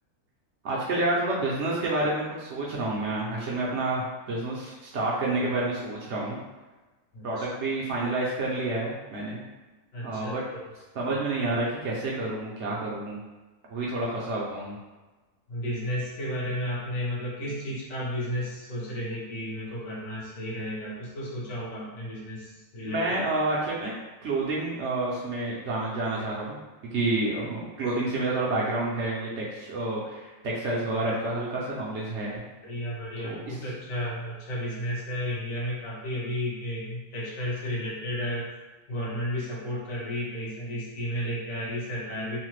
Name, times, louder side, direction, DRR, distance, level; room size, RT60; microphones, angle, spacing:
voice 1, 0.6-6.4 7.2-9.4 10.0-10.4 10.9-13.2 13.7-14.8 22.9-23.9 24.2-26.6 26.9-32.4 33.2-33.6, right 2 dB, 65° right, -5 dB, 0.7 m, -29 dB
voice 2, 7.1-7.5 9.9-10.3 11.1-11.2 15.5-23.2 32.6-38.5 38.9-42.4, equal, 65° left, -6 dB, 1.3 m, -33 dB
3.1 x 2.1 x 3.0 m, 1.2 s
omnidirectional pair, 1.5 m